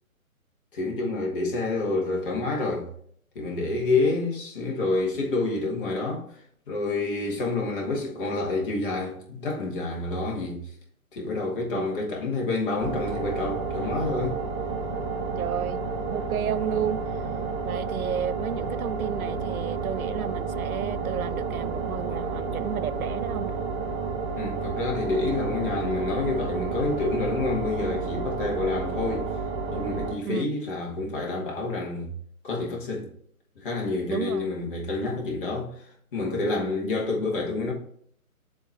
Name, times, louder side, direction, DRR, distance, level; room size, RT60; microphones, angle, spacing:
voice 1, 0.7-2.9 3.3-6.3 6.7-10.7 11.1-14.4 24.4-29.3 29.7-32.1 32.4-33.1 33.5-37.7, left 3 dB, 35° left, 1.7 m, -28 dB
sound 1, 12.8-30.1, right 4 dB, 20° right, 0.8 m, -31 dB
voice 2, 15.3-15.8 16.1-17.0 17.6-23.5 30.3-30.5 34.1-34.5 36.7-36.8, right 9 dB, 75° right, 0.5 m, -32 dB
7.4 x 2.9 x 6.0 m
figure-of-eight pair, 140°, 43 cm